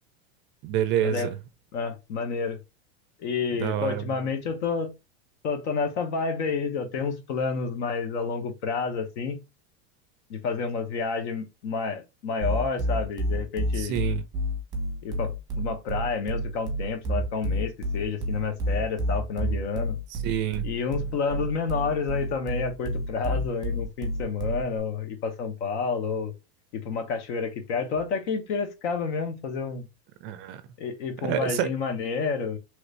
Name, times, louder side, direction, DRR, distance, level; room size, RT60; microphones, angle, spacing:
voice 1, 0.6-1.3 3.6-4.0 13.8-14.2 20.1-20.6 30.2-30.6 31.2-31.7, right 11 dB, 35° right, 0.4 m, -27 dB
voice 2, 1.7-2.6 3.2-4.9 5.4-9.4 10.3-14.0 15.0-20.0 20.6-26.3 26.7-29.8 30.8-32.6, left 5 dB, 70° left, 1.0 m, -29 dB
sound 1, 12.4-24.8, equal, 10° right, 1.0 m, -29 dB
3.1 x 2.5 x 3.1 m
supercardioid pair, 150°, 35 cm